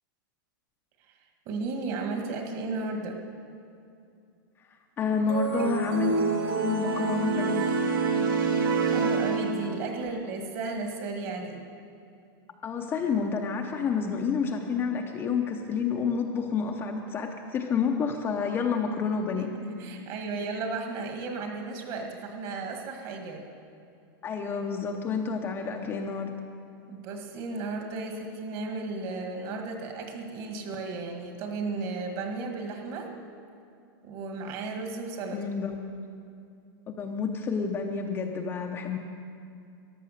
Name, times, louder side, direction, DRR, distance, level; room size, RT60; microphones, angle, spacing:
voice 1, 1.5-3.2 8.9-11.6 19.4-23.5 26.9-33.1 34.0-35.5, right 3 dB, 35° right, 3 dB, 1.7 m, -34 dB
voice 2, 5.0-6.2 6.6-7.7 10.0-10.1 12.6-19.5 24.2-26.4 35.3-35.7 36.9-39.0, left 5 dB, 15° left, 2 dB, 0.7 m, -29 dB
sound 1, 5.3-9.9, right 5 dB, 70° right, 1.9 m, -27 dB
14.0 x 11.0 x 6.5 m, 2.5 s
supercardioid pair, 160°, 12 cm